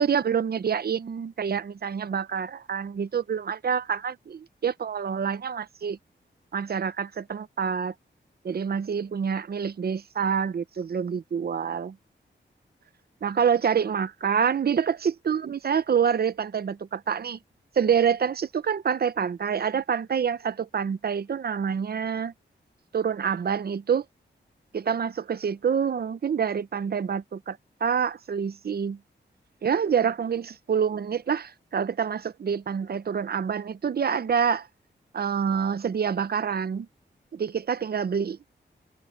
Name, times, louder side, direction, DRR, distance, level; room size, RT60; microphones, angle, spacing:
voice 1, 0.0-6.0 6.5-7.9 8.4-12.0 13.2-17.4 17.8-22.3 22.9-24.0 24.7-29.0 29.6-34.7 35.1-36.9 37.3-38.4, right 7 dB, 55° right, 0.8 m, -27 dB
wide cardioid pair, 135°, 19 cm